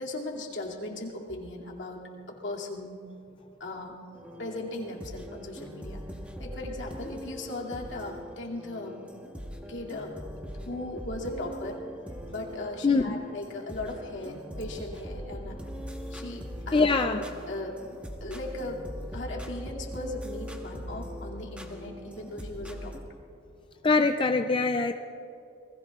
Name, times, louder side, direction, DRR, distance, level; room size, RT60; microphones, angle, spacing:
voice 1, 0.0-3.0 3.6-4.0 4.4-6.0 6.4-9.0 9.7-10.2 10.5-11.8 12.3-15.6 16.1-17.8 18.2-18.8 19.1-22.9, left 2 dB, 65° left, -2 dB, 2.6 m, -38 dB
sound 1, 4.1-23.0, equal, 5° right, 1.2 m, -41 dB
voice 2, 12.8-13.2 16.7-17.3 23.8-24.9, left 3 dB, 25° left, 6 dB, 0.4 m, -23 dB
28.0 x 20.5 x 2.4 m, 2.6 s
head